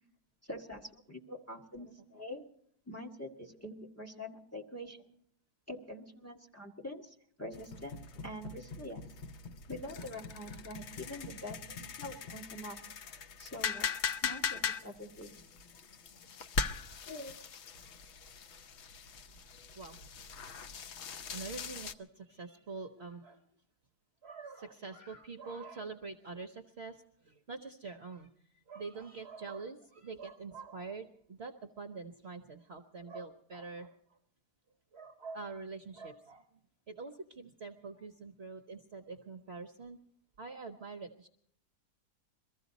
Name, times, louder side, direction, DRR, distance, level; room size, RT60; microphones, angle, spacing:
voice 1, 0.4-2.4 2.9-5.0 5.7-8.0 8.2-9.0 9.7-11.6 12.0-12.8 13.4-13.9 14.2-15.4 17.1-17.4, left 1 dB, 10° left, 1 dB, 1.7 m, -45 dB
sound 1, 7.5-21.9, left 5 dB, 55° left, 0.9 m, -40 dB
voice 2, 21.3-23.5 24.2-34.2 34.9-36.6 36.9-40.0 40.4-41.3, right 4 dB, 50° right, 6 dB, 1.0 m, -45 dB
23.0 x 14.5 x 4.1 m, 0.67 s
omnidirectional pair, 1.7 m